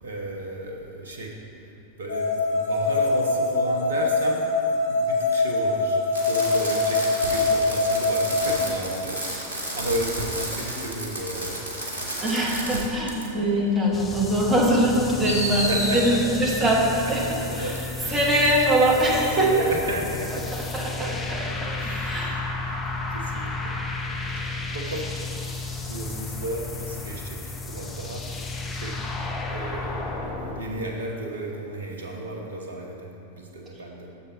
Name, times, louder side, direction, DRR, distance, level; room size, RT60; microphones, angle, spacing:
voice 1, 0.0-1.3 2.0-4.4 4.9-11.7 13.3-13.6 15.7-18.3 19.3-21.2 21.7-22.8 23.1-23.7 24.7-25.1 25.8-28.3 28.7-29.0 29.4-34.1, right 1 dB, 70° right, 0 dB, 1.1 m, -34 dB
sound 1, 2.1-8.6, left 3 dB, 55° left, 0.9 m, -23 dB
Fireworks, 6.1-12.8 13.1-13.2 14.3-14.4 15.2-16.1 17.7-17.8, right 1 dB, 85° left, 1.4 m, -31 dB
voice 2, 12.2-19.7 20.3-22.3 23.3-23.5, right 1 dB, 20° right, -3 dB, 1.2 m, -23 dB
sound 2, 13.9-30.6, left 3 dB, 20° left, 0.7 m, -33 dB
7.0 x 6.8 x 4.1 m, 2.7 s
figure-of-eight pair, 90°, 0 cm